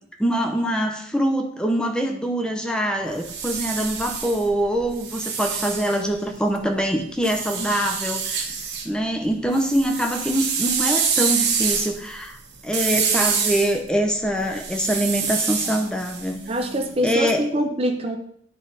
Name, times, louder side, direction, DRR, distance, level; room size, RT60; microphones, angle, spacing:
voice 1, 0.2-8.6 8.8-12.4 12.6-16.4 17.0-17.5, equal, 5° left, 3 dB, 0.7 m, -24 dB
sound 1, 3.0-6.6 7.2-8.9 9.2-17.1, right 6 dB, 70° right, 1.1 m, -27 dB
voice 2, 16.5-18.2, equal, 35° right, 4 dB, 0.6 m, -24 dB
9.8 x 3.4 x 4.1 m, 0.65 s
head